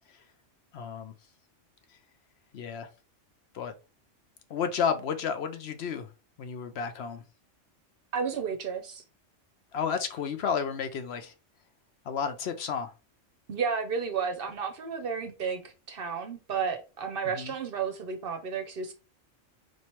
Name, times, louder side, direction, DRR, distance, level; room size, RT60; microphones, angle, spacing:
voice 1, 0.7-1.1 2.5-2.9 3.5-3.7 4.5-6.1 6.4-7.2 9.7-11.3 12.1-12.9 17.3-17.5, left 6 dB, 65° left, 0.8 m, -31 dB
voice 2, 8.1-9.0 13.5-18.9, right 6 dB, 55° right, 0.7 m, -32 dB
4.4 x 3.1 x 2.9 m
omnidirectional pair, 1.2 m